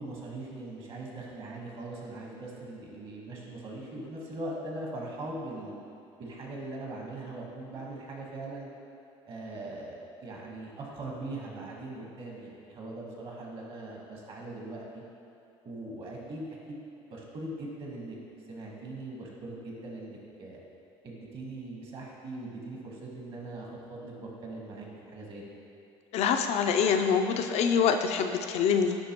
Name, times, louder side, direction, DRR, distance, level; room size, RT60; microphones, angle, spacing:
voice 1, 0.0-5.8 6.2-8.7 9.2-15.0 15.6-16.8 17.1-18.2 18.5-20.6 21.0-25.4, right 2 dB, 50° right, -2 dB, 1.2 m, -41 dB
voice 2, 26.1-29.0, left 6 dB, 60° left, 6 dB, 0.4 m, -25 dB
9.5 x 3.4 x 2.9 m, 2.7 s
cardioid pair, 110°, 12 cm